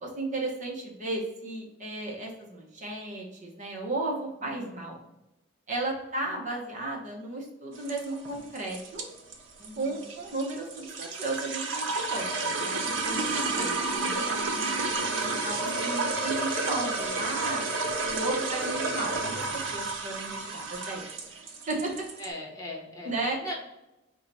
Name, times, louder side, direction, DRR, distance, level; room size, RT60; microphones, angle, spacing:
voice 1, 0.0-5.0 5.7-9.0 9.8-12.8 13.0-17.6 18.1-22.0 23.0-23.4, right 2 dB, 40° right, -1 dB, 0.9 m, -34 dB
voice 2, 4.4-4.7 9.6-10.0 13.0-13.7 22.2-23.1 23.4-23.5, left 1 dB, 20° left, -2 dB, 0.9 m, -40 dB
sound 1, 7.7-22.3, right 3 dB, 90° right, 0.7 m, -31 dB
4.5 x 2.2 x 4.0 m, 0.93 s
head